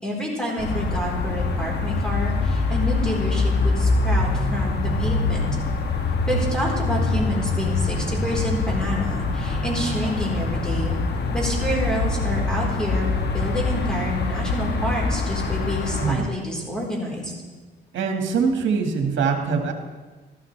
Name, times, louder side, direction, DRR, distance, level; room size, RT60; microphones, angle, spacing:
voice 1, 0.0-5.5 6.3-11.0 11.3-13.1 13.3-17.3, equal, 5° left, -3 dB, 4.1 m, -28 dB
sound 1, 0.6-16.2, left 3 dB, 60° left, 1.4 m, -24 dB
voice 2, 17.9-19.7, right 5 dB, 70° right, 3 dB, 1.9 m, -23 dB
14.0 x 12.0 x 3.4 m, 1.3 s
cardioid pair, 90°, 20 cm